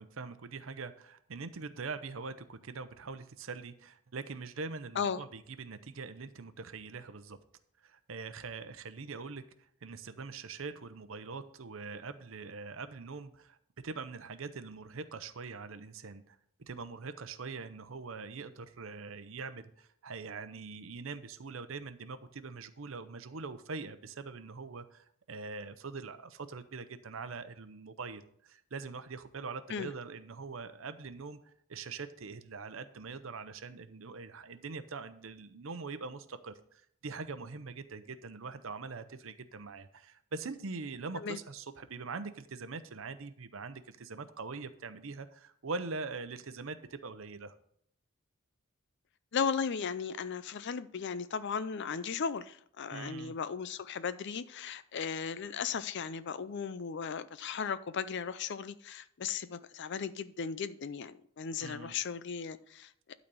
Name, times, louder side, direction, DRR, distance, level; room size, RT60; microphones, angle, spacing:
voice 1, 0.0-7.4 7.8-9.4 9.8-13.6 13.8-16.4 16.7-47.5 52.9-53.4 61.6-61.9, right 4 dB, 70° right, 0.7 m, -43 dB
voice 2, 49.3-63.1, left 6 dB, 55° left, 0.5 m, -36 dB
12.0 x 4.1 x 6.8 m
head